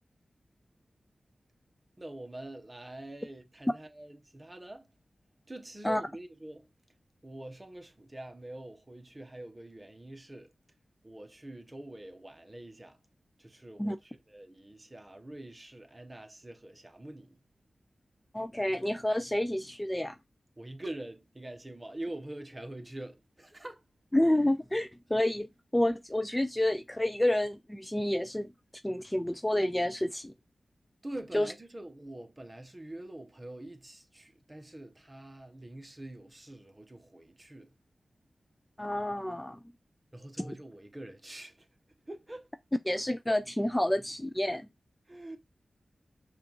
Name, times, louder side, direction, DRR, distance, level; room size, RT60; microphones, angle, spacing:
voice 1, 2.0-4.9 5.5-6.7 7.2-10.5 11.0-13.0 13.4-17.4 20.6-23.8 31.0-37.7 40.1-41.7 42.1-42.5 45.1-45.4, right 1 dB, 25° right, 0.9 m, -45 dB
voice 2, 18.3-20.2 24.1-28.5 28.8-30.3 31.3-31.5 38.8-39.6 40.4-40.5 42.9-44.7, left 1 dB, 15° left, 0.3 m, -29 dB
5.0 x 2.4 x 3.0 m
cardioid pair, 50°, 0 cm